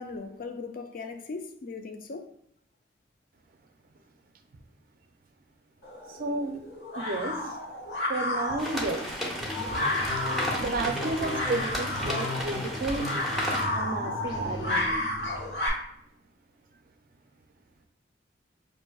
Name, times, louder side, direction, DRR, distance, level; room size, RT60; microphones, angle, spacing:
voice 1, 0.0-2.3, left 4 dB, 50° left, 0.4 m, -38 dB
sound 1, 5.8-15.7, left 1 dB, 65° left, 1.2 m, -32 dB
voice 2, 6.1-6.6 7.0-7.6 8.1-9.0 9.8-10.0 10.6-13.1 13.7-14.9, right 2 dB, 50° right, 0.4 m, -32 dB
sound 2, 8.6-13.7, left 1 dB, ahead, 0.7 m, -34 dB
sound 3, 9.2-15.6, left 1 dB, 25° left, 0.9 m, -37 dB
6.0 x 2.6 x 2.3 m
head